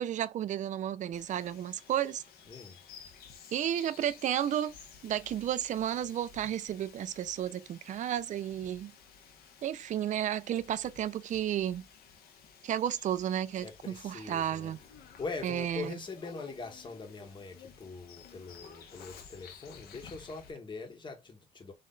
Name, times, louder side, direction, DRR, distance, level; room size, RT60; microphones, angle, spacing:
voice 1, 0.0-2.2 3.5-4.8 5.0-8.9 9.6-11.9 12.6-14.8 15.4-15.9, right 10 dB, 45° right, 0.5 m, -32 dB
Bird vocalization bird call bird song, 1.1-20.5, left 6 dB, 65° left, 1.4 m, -54 dB
voice 2, 2.4-2.8 13.5-21.7, left 4 dB, 30° left, 1.7 m, -43 dB
4.1 x 3.2 x 3.9 m
cardioid pair, 110°, 17 cm